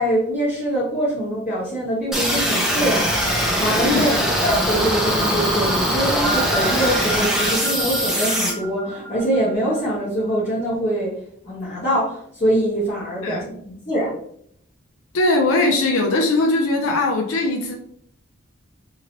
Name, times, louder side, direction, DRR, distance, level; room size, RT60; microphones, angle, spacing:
voice 1, 0.0-4.1 4.4-11.2 11.4-14.2, right 1 dB, 35° left, -11 dB, 1.1 m, -23 dB
sound 1, 2.1-8.5, equal, ahead, 0.4 m, -21 dB
sound 2, 6.2-10.2, right 1 dB, 15° left, 0.8 m, -31 dB
voice 2, 15.1-17.8, left 2 dB, 80° left, 2 dB, 0.5 m, -20 dB
2.9 x 2.7 x 2.9 m, 0.66 s
head